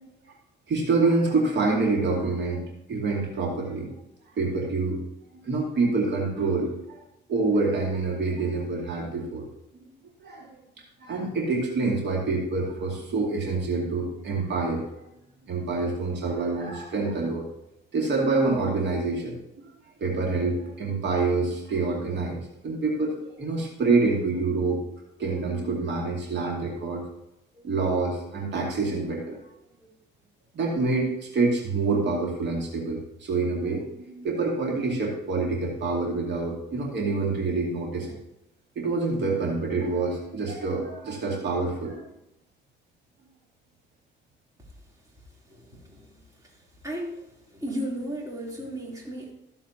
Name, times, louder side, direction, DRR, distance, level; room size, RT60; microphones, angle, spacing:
voice 1, 0.7-2.6 2.9-3.9 4.3-5.0 5.4-7.0 7.3-9.5 9.8-9.9 10.2-10.5 11.0-14.9 15.5-17.4 17.9-19.4 20.0-24.8 25.2-27.0 27.6-29.4 30.5-38.1 38.8-42.0, right 3 dB, 60° right, -2 dB, 2.5 m, -26 dB
voice 2, 45.5-46.1 46.4-46.6 46.8-47.3 47.5-49.3, equal, 15° right, -3 dB, 3.5 m, -34 dB
14.5 x 7.2 x 2.9 m, 0.87 s
cardioid pair, 90°, 20 cm